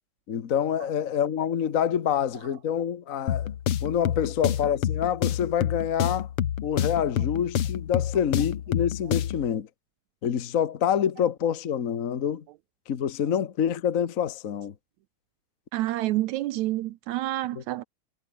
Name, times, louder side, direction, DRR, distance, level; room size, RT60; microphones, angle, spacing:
voice 1, 0.3-3.5 3.8-6.3 6.6-9.7 10.2-12.4 12.9-14.7 17.6-17.7, left 9 dB, 70° left, 0.7 m, -26 dB
sound 1, 3.3-9.5, left 10 dB, 55° left, 1.9 m, -28 dB
voice 2, 15.7-17.8, right 16 dB, 80° right, 2.0 m, -28 dB
omnidirectional pair, 3.4 m